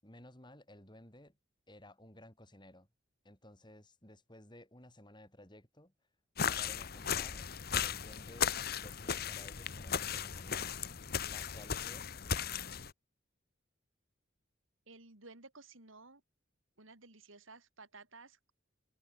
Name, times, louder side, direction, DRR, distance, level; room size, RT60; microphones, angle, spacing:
voice 1, 0.0-1.4 1.7-2.9 3.2-5.9 6.5-10.7 11.2-12.1, left 1 dB, 20° left, 7.3 m, -56 dB
sound 1, 6.4-12.9, left 7 dB, 50° left, 1.0 m, -36 dB
voice 2, 14.9-16.2 16.8-18.5, right 3 dB, 85° right, 4.7 m, -55 dB
head